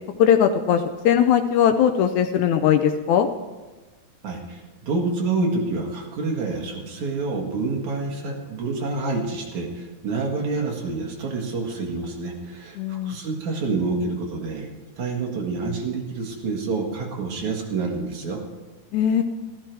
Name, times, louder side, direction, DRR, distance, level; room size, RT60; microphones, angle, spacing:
voice 1, 0.2-3.3 12.8-13.2 18.9-19.2, left 9 dB, 80° left, 7 dB, 1.7 m, -19 dB
voice 2, 4.2-14.7 15.0-18.4, right 3 dB, 60° right, 0 dB, 3.0 m, -28 dB
14.5 x 13.5 x 4.6 m, 1.2 s
omnidirectional pair, 4.0 m